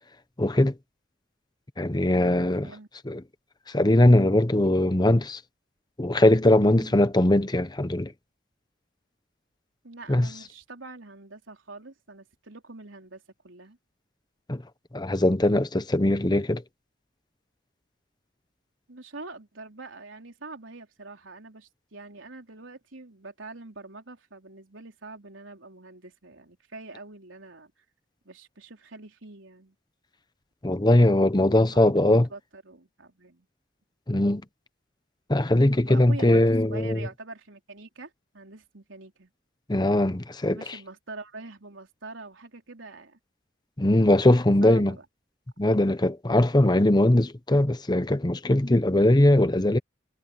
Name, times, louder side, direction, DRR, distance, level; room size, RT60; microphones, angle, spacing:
voice 1, 0.4-0.7 1.8-2.7 3.1-3.2 3.7-5.4 6.0-8.1 10.1-10.3 14.5-14.6 14.9-16.6 30.6-32.3 34.1-34.4 35.3-37.1 39.7-40.6 43.8-44.9 45.6-49.8, left 1 dB, 20° left, 0.9 m, -21 dB
voice 2, 2.1-2.9 6.5-7.0 9.8-13.8 18.9-27.8 28.3-29.8 31.7-33.5 35.9-39.3 40.5-43.2 44.6-45.1, right 3 dB, 90° right, 3.8 m, -44 dB
head